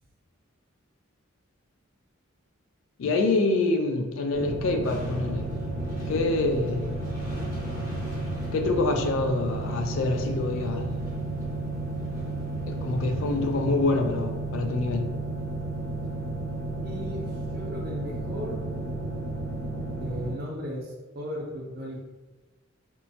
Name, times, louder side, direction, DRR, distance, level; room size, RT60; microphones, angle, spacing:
voice 1, 3.0-5.5 6.1-6.9 8.5-10.9 12.7-15.1, left 2 dB, 65° left, 5 dB, 0.3 m, -26 dB
sound 1, 4.3-20.3, right 2 dB, 5° left, 0.6 m, -33 dB
sound 2, 4.8-13.6, equal, 40° left, 1.0 m, -40 dB
voice 2, 16.8-18.6 20.0-22.0, equal, 45° right, -2 dB, 0.6 m, -36 dB
3.0 x 2.1 x 2.7 m, 1.2 s
head